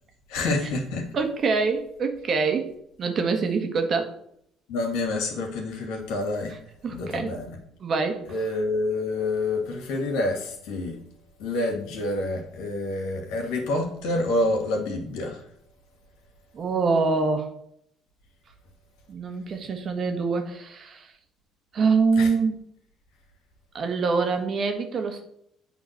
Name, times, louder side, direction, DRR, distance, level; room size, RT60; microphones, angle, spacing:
voice 1, 0.3-1.1 4.7-6.5 6.9-7.5 8.3-11.0 11.4-15.4 22.2-22.3, left 2 dB, 75° left, 1 dB, 2.3 m, -28 dB
voice 2, 1.1-2.7 3.0-4.1 6.8-7.3 7.8-8.2 16.5-17.5 19.1-21.1 21.7-22.5 23.7-25.3, right 4 dB, 50° right, 5 dB, 1.5 m, -25 dB
8.4 x 3.9 x 6.6 m, 0.72 s
hypercardioid pair, 65°, 0 cm